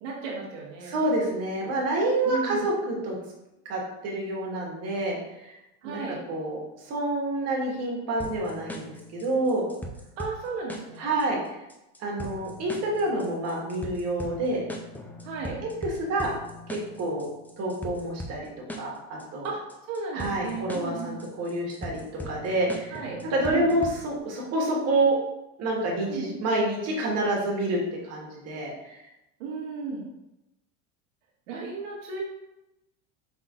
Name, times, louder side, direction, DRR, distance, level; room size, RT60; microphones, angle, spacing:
voice 1, 0.0-1.0 2.2-2.6 5.8-6.2 10.2-11.1 15.2-15.6 19.4-19.6 19.9-21.3 22.9-23.2 23.5-23.7 26.1-26.3 29.4-30.1 31.5-32.2, right 4 dB, 90° right, -3 dB, 1.5 m, -34 dB
voice 2, 0.8-3.1 3.6-5.2 5.4-5.6 5.8-6.0 6.3-9.6 11.0-11.6 12.0-14.6 15.8-16.3 16.7-17.3 17.6-19.5 20.1-25.2 25.6-27.8 28.0-29.0, right 2 dB, 45° right, -2 dB, 1.6 m, -28 dB
sound 1, 8.2-24.2, left 1 dB, 5° left, 0.3 m, -40 dB
5.5 x 3.7 x 2.5 m, 0.91 s
supercardioid pair, 120°, 36 cm